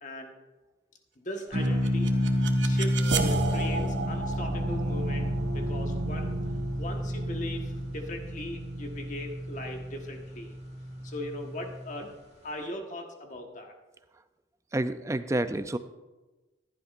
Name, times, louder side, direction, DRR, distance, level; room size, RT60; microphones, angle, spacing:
voice 1, 0.0-0.3 1.2-2.2 2.6-6.4 6.8-10.6 11.0-12.1 12.4-13.7, left 1 dB, 40° left, 3 dB, 1.4 m, -39 dB
sound 1, 1.5-12.1, equal, 35° right, 1.5 m, -31 dB
sound 2, 1.6-10.6, right 3 dB, 80° right, 1.0 m, -34 dB
voice 2, 14.7-15.8, right 1 dB, 15° right, 11 dB, 0.4 m, -29 dB
14.5 x 11.5 x 2.5 m, 1.2 s
head